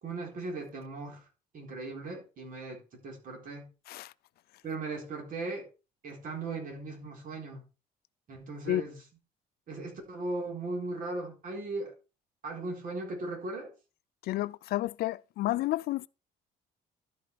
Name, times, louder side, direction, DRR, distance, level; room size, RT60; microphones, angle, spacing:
voice 1, 0.0-1.2 1.5-3.7 4.6-5.7 6.0-7.6 8.3-9.0 9.7-11.9 12.4-13.7, right 3 dB, 55° right, 3.9 m, -38 dB
voice 2, 14.3-16.1, left 16 dB, 65° left, 0.4 m, -31 dB
12.0 x 5.1 x 4.7 m
cardioid pair, 110°, 17 cm